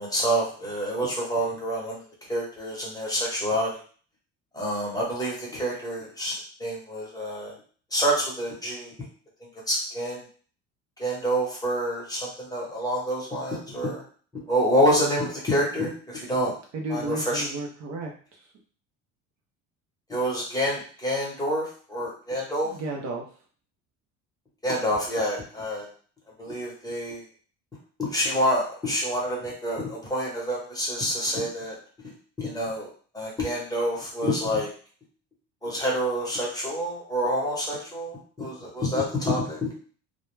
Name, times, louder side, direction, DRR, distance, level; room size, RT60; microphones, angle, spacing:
voice 1, 0.0-2.0 2.3-3.8 4.5-7.5 7.9-9.1 9.7-10.2 11.0-14.0 14.3-16.5 16.9-17.4 20.1-22.7 24.6-25.9 26.4-27.2 28.0-31.8 32.0-32.1 32.4-32.9 33.1-34.7 35.6-39.7, equal, 10° left, -4 dB, 0.9 m, -27 dB
voice 2, 16.7-18.1 18.4-18.5 22.6-23.3, right 2 dB, 50° right, 0 dB, 0.6 m, -33 dB
2.2 x 2.1 x 3.1 m, 0.42 s
cardioid pair, 130°, 37 cm